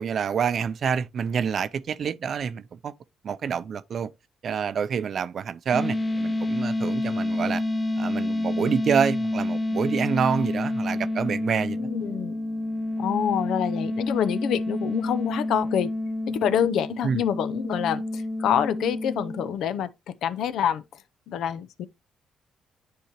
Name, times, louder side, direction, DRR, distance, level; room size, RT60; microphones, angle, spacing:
voice 1, 0.0-2.9 3.2-4.1 4.4-7.6 8.0-11.8 17.0-17.2, right 7 dB, 55° right, 0.5 m, -27 dB
sound 1, 5.7-19.6, left 1 dB, 20° left, 1.0 m, -28 dB
voice 2, 11.8-12.4 13.0-15.9 16.3-19.9 20.2-20.8 21.3-21.9, left 9 dB, 80° left, 0.5 m, -26 dB
10.0 x 3.8 x 2.8 m
cardioid pair, 90°, 0 cm